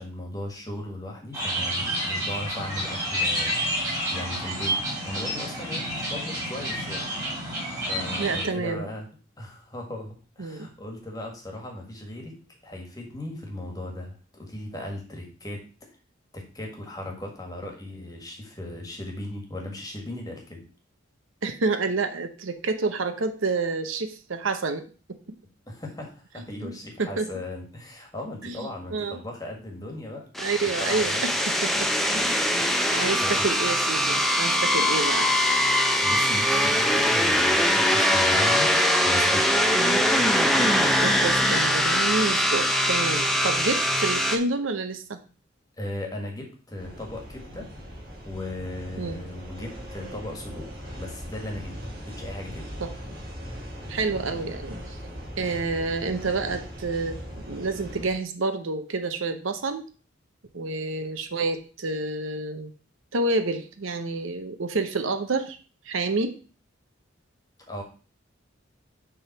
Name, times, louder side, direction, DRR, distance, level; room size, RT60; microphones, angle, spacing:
voice 1, 0.0-7.1 7.9-9.1 9.4-12.4 12.6-15.6 16.3-20.6 25.7-30.3 30.8-31.5 32.6-33.6 36.0-39.5 45.8-47.7 48.2-50.7 51.0-51.7 52.0-52.7 67.7-67.8, left 1 dB, 20° left, 1 dB, 1.6 m, -37 dB
sound 1, 1.3-8.4, equal, 15° right, 2.8 m, -29 dB
voice 2, 8.2-8.9 10.4-10.7 21.4-24.8 25.1-25.2 26.6-26.7 27.0-27.3 28.4-29.2 30.4-31.9 32.1-32.5 32.9-35.3 39.7-40.1 41.0-45.2 49.0-49.2 52.8-52.9 53.9-55.0 55.4-59.9 60.5-62.7 63.1-65.6 65.9-66.3, right 3 dB, 80° right, 8 dB, 0.8 m, -29 dB
sound 2, 30.4-44.4, equal, ahead, 0.6 m, -22 dB
sound 3, 46.8-58.1, equal, 50° right, 2.4 m, -39 dB
7.0 x 3.6 x 5.8 m, 0.38 s
head